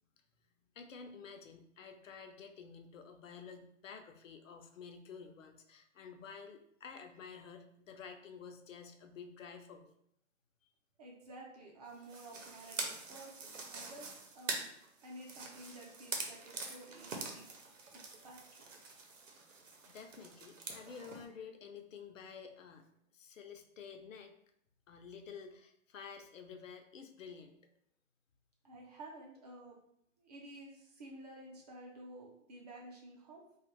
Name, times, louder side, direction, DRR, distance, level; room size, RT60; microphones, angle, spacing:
voice 1, 0.8-9.9 19.9-22.9 23.1-24.3 24.9-27.5, left 6 dB, 90° left, 5 dB, 0.6 m, -51 dB
voice 2, 11.0-14.7 15.0-17.5 17.9-18.7 28.6-29.8 30.2-33.5, right 1 dB, 35° right, -1 dB, 0.6 m, -52 dB
sound 1, 12.0-21.2, right 3 dB, 80° right, 0.8 m, -45 dB
2.4 x 2.3 x 3.2 m, 0.71 s
hypercardioid pair, 160°, 37 cm